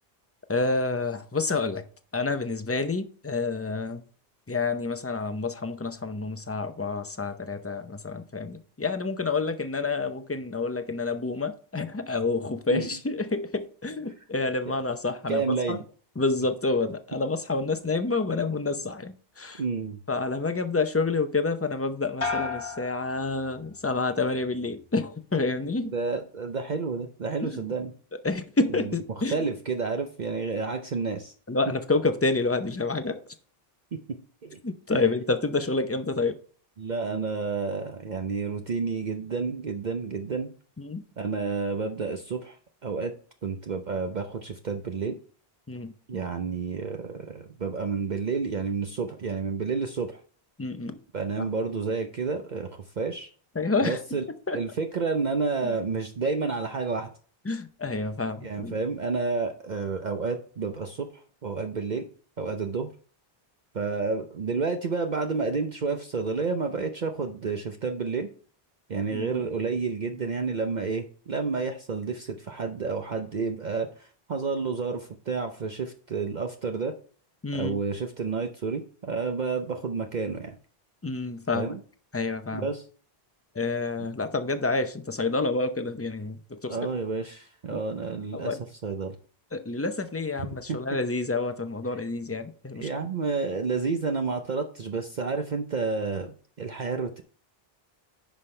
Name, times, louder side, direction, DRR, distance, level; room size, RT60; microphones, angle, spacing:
voice 1, 0.5-1.8 2.1-4.0 4.5-15.8 16.2-19.6 20.1-25.9 27.4-27.6 28.2-29.4 31.5-33.2 34.6-36.4 40.8-41.0 45.7-45.9 50.6-51.0 51.4-51.5 53.5-54.2 54.5-54.6 55.6-55.7 57.4-58.8 69.1-69.5 77.4-77.8 81.0-81.8 82.1-82.7 83.5-86.8 87.7-87.8 88.3-88.6 89.5-92.9, left 3 dB, 15° left, 0.6 m, -28 dB
voice 2, 15.3-15.8 19.6-20.0 25.8-27.9 29.3-31.3 34.4-34.6 34.9-35.0 36.8-40.5 41.2-42.6 42.8-43.1 43.4-45.2 46.1-50.2 51.1-52.7 53.0-53.3 53.8-54.2 54.5-57.1 58.4-61.1 61.4-62.1 62.4-62.9 63.7-68.3 68.9-76.9 77.5-80.5 81.5-81.8 82.5-82.8 86.7-88.6 88.8-89.1 90.7-90.8 92.8-96.3 96.6-97.2, right 4 dB, 50° right, 0.8 m, -30 dB
sound 1, 22.2-23.9 24.3-24.9, left 4 dB, 30° left, 1.3 m, -35 dB
10.0 x 5.7 x 3.3 m
omnidirectional pair, 1.1 m